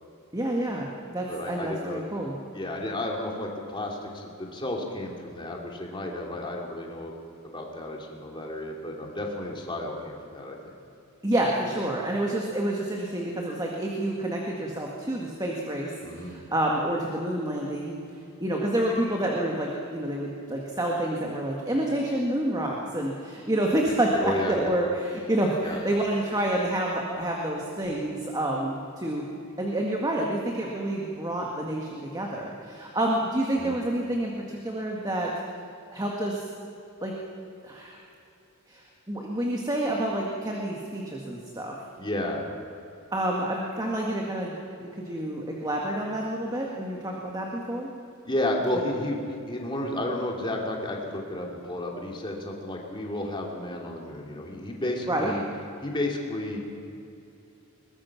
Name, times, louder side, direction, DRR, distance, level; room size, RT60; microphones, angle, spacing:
voice 1, 0.3-2.4 11.2-18.0 18.4-29.3 29.6-35.3 35.9-36.5 37.0-37.1 37.6-38.0 38.7-41.8 43.1-44.5 44.8-47.9 55.1-55.3, right 1 dB, 15° right, -1 dB, 1.8 m, -28 dB
voice 2, 1.3-2.0 2.5-7.1 7.4-10.6 16.0-16.3 24.2-24.7 25.6-25.8 33.6-33.8 42.0-42.4 48.2-55.4 55.8-56.6, left 1 dB, 20° left, 0 dB, 2.8 m, -32 dB
22.0 x 20.5 x 6.0 m, 2.7 s
head